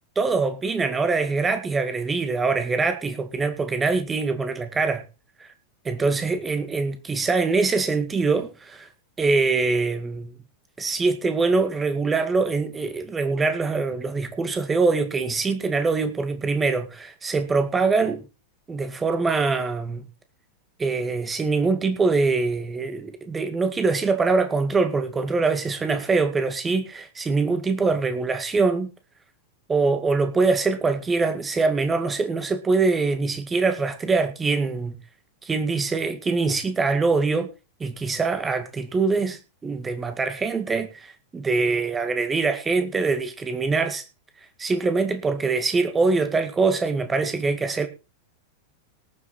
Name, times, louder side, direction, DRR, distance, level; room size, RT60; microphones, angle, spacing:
voice 1, 0.2-5.1 5.4-5.5 5.8-8.9 9.2-10.3 10.8-18.2 18.7-20.0 20.8-28.9 29.7-34.9 35.5-37.5 37.8-44.0 44.6-47.9, right 4 dB, 15° right, 2.1 m, -23 dB
19.0 x 7.1 x 4.3 m
figure-of-eight pair, 90°, 0 cm